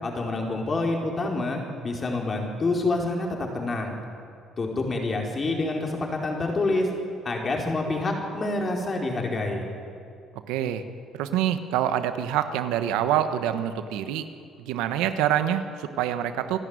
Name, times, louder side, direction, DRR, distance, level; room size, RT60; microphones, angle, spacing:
voice 1, 0.0-4.0 4.6-6.9 7.2-9.6, left 2 dB, 30° left, 1 dB, 4.5 m, -27 dB
voice 2, 10.5-10.8 11.1-14.2 14.6-16.6, right 10 dB, 90° right, 10 dB, 1.3 m, -26 dB
28.0 x 11.5 x 9.7 m, 2.4 s
cardioid pair, 100°, 0 cm